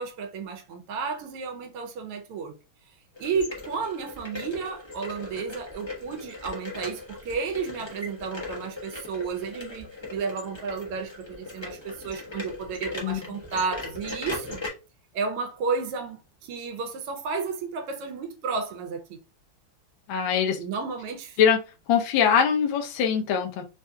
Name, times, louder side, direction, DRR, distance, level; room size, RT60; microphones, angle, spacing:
voice 1, 0.0-2.6 3.2-14.6 15.1-19.2 20.6-21.4, right 5 dB, 85° right, 1.7 m, -32 dB
sound 1, 3.1-14.7, left 3 dB, 40° left, 0.3 m, -39 dB
voice 2, 20.1-20.6 21.4-21.6 21.9-23.6, left 7 dB, 70° left, 1.4 m, -22 dB
4.3 x 2.7 x 2.2 m
omnidirectional pair, 2.4 m